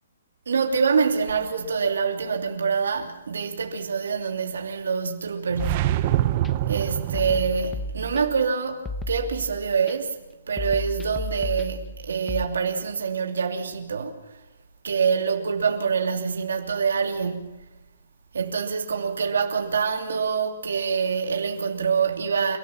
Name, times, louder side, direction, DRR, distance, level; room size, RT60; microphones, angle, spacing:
voice 1, 0.5-6.1 6.7-10.1 10.5-14.2 14.8-17.5 18.3-22.6, right 5 dB, 85° right, 3.0 m, -25 dB
sound 1, 5.5-7.7, right 13 dB, 30° right, 0.8 m, -25 dB
sound 2, 5.6-6.5 7.1-8.5 8.8-9.9 10.6-12.4, left 1 dB, 10° left, 0.9 m, -34 dB
29.5 x 14.0 x 7.2 m
hypercardioid pair, 170°, 0 cm